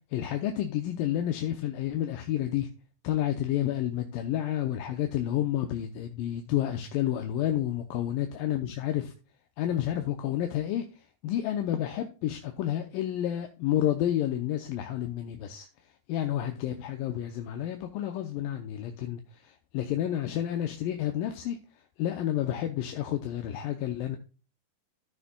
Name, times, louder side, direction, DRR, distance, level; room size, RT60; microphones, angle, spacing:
voice 1, 0.1-2.7 3.0-9.1 9.6-10.8 11.2-15.7 16.1-21.6 22.0-24.2, left 12 dB, 90° left, 2.4 m, -30 dB
13.5 x 6.9 x 2.3 m
omnidirectional pair, 3.9 m